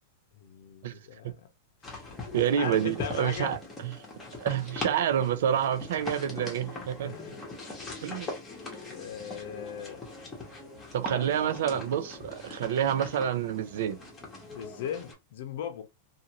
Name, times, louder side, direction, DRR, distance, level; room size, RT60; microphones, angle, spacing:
voice 1, 0.4-1.4 2.3-3.5 7.0-7.4 8.9-10.0 11.1-11.2 11.7-11.8 14.5-15.8, left 8 dB, 65° left, 0.7 m, -38 dB
sound 1, 1.8-15.1, left 3 dB, 15° left, 1.0 m, -41 dB
voice 2, 2.3-3.6 3.8-3.9 4.4-7.1 8.0-8.3 10.9-14.0, right 9 dB, 70° right, 0.5 m, -28 dB
2.6 x 2.5 x 2.8 m
supercardioid pair, 160°, 0 cm